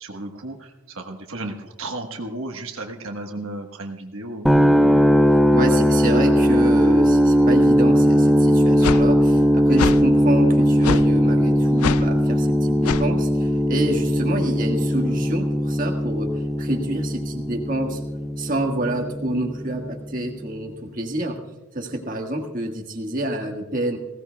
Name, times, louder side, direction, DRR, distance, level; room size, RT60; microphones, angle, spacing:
voice 1, 0.0-4.5, right 2 dB, 70° right, 3 dB, 1.3 m, -34 dB
sound 1, 4.5-20.4, equal, ahead, 0.4 m, -19 dB
voice 2, 5.5-18.0 18.4-21.4 21.7-24.0, right 1 dB, 40° right, 1 dB, 1.5 m, -27 dB
sound 2, 8.8-9.0 9.8-10.0 10.8-11.1 11.8-12.0 12.8-13.0, left 7 dB, 90° left, 0.4 m, -24 dB
20.5 x 16.5 x 2.3 m, 1.1 s
head